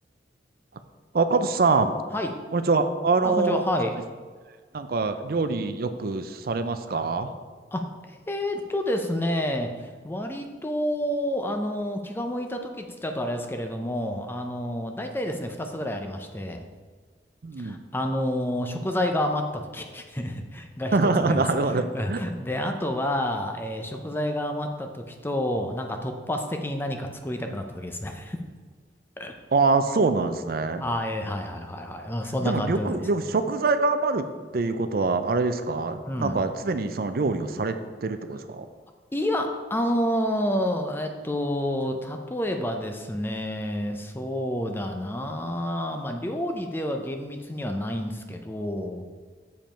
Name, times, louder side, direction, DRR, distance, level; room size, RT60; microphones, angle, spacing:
voice 1, 1.1-1.9 2.5-3.6 4.7-7.3 17.4-17.8 20.9-22.2 29.5-30.8 32.4-34.3 34.5-38.7, right 3 dB, 55° right, 9 dB, 0.5 m, -24 dB
voice 2, 3.2-3.9 7.7-16.6 17.6-21.4 21.7-28.4 29.2-29.3 30.8-33.0 36.1-36.4 39.1-49.0, left 1 dB, 10° left, 4 dB, 0.5 m, -29 dB
7.1 x 5.1 x 4.4 m, 1.5 s
head